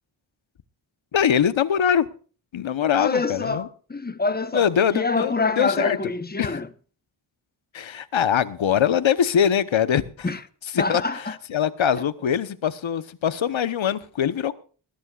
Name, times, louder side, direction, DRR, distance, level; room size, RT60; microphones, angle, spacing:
voice 1, 1.1-2.1 2.5-3.7 4.5-6.0 6.4-6.6 7.7-10.3 10.7-14.5, left 8 dB, 80° left, 1.1 m, -23 dB
voice 2, 3.0-6.7 10.2-10.4 10.8-11.4, left 3 dB, 20° left, 1.1 m, -26 dB
21.0 x 14.0 x 2.4 m
wide cardioid pair, 90°, 46 cm